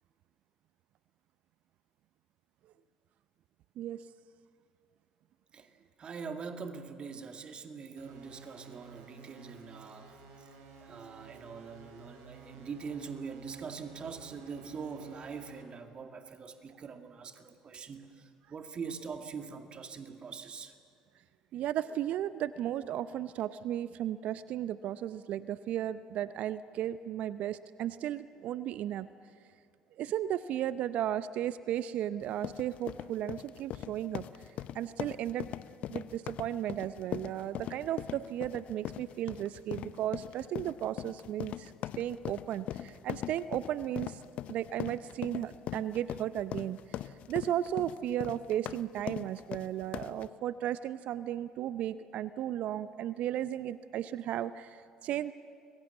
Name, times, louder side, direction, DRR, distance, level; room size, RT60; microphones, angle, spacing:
voice 1, 5.5-10.5 10.8-20.7, right 5 dB, 40° right, 6 dB, 2.2 m, -43 dB
sound 1, 8.0-15.6, right 4 dB, 75° right, 4.4 m, -53 dB
voice 2, 21.5-29.1 30.0-34.3 34.7-35.5 35.9-41.7 42.0-44.2 44.5-46.8 47.3-55.3, right 11 dB, 55° right, 15 dB, 0.6 m, -35 dB
sound 2, 32.2-50.3, left 12 dB, 55° left, 0.7 m, -41 dB
30.0 x 22.5 x 7.3 m, 2.5 s
hypercardioid pair, 60°, 3 cm